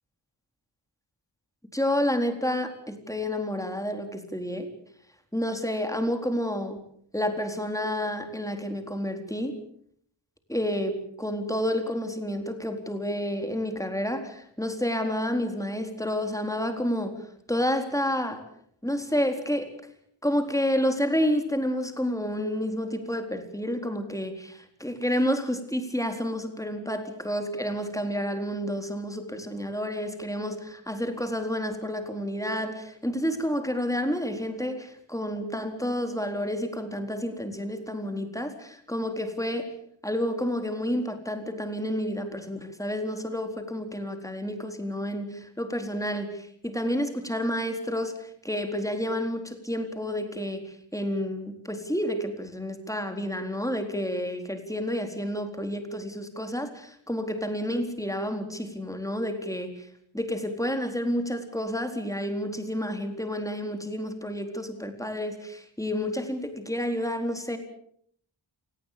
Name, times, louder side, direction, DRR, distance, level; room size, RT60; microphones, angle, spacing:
voice 1, 1.7-4.7 5.3-6.8 7.1-9.6 10.5-17.2 17.5-18.4 18.8-19.7 20.2-39.7 40.0-59.9 60.1-67.6, equal, 5° left, 6 dB, 4.1 m, -30 dB
29.0 x 18.5 x 6.9 m, 0.65 s
wide cardioid pair, 40°, 49 cm